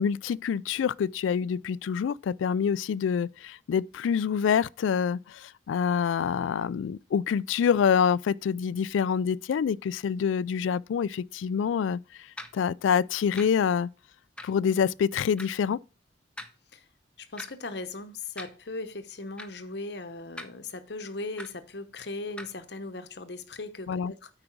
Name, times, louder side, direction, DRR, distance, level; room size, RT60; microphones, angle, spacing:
voice 1, 0.0-12.0 12.5-13.9 14.4-15.8 23.9-24.1, left 7 dB, 90° left, 0.3 m, -26 dB
sound 1, 12.4-12.5 13.4-13.5 14.4-14.5 15.4-15.5 16.4-16.5 17.4-17.5 18.4-18.5 19.4-19.5 20.4-20.5 21.4-21.5 22.4-22.5, left 1 dB, 5° left, 0.8 m, -40 dB
voice 2, 17.2-24.3, left 2 dB, 60° left, 0.9 m, -38 dB
8.8 x 4.9 x 6.0 m
head